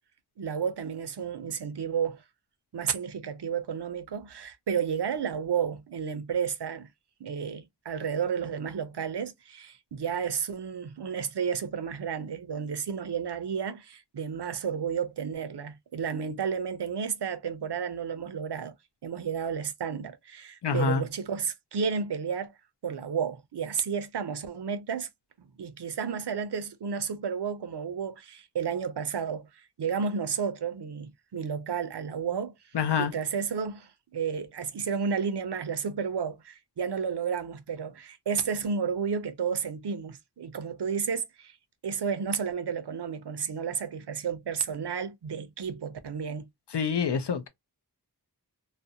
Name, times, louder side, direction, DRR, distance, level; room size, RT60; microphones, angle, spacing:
voice 1, 0.4-2.2 2.7-6.9 7.2-18.7 19.0-22.5 22.8-25.1 25.4-32.5 33.0-41.6 41.8-46.5, right 6 dB, 75° right, 0.5 m, -32 dB
voice 2, 20.6-21.0 32.7-33.1 46.7-47.5, left 6 dB, 85° left, 0.5 m, -26 dB
2.4 x 2.0 x 2.6 m
wide cardioid pair, 40°, 40 cm